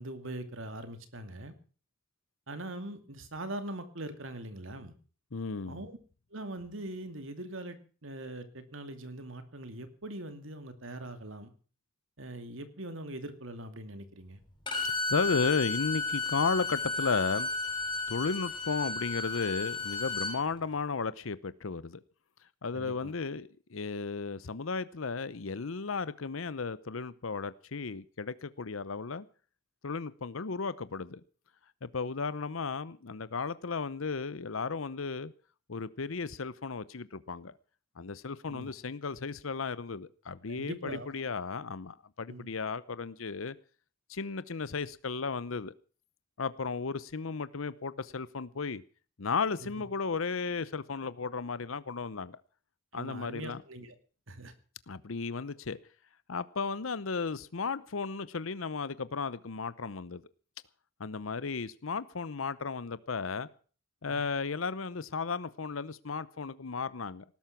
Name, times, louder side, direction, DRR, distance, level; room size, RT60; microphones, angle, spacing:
voice 1, 0.0-1.5 2.5-4.9 5.7-6.0 6.3-11.5 12.2-14.4 22.7-23.1 38.5-38.7 40.5-41.1 42.3-42.5 52.9-53.9 54.3-54.5 64.0-64.3, right 1 dB, 75° right, 2.5 m, -42 dB
voice 2, 5.3-5.9 14.9-17.5 18.1-22.0 22.6-29.2 29.8-31.2 31.8-35.3 35.7-37.5 38.0-43.6 44.1-45.7 46.4-48.8 49.2-52.4 52.9-53.6 54.9-55.8 56.3-60.2 61.0-63.5 64.0-67.2, left 4 dB, 85° left, 0.8 m, -34 dB
Bowed string instrument, 14.7-20.4, left 3 dB, 25° left, 6.0 m, -33 dB
19.0 x 12.0 x 5.9 m
head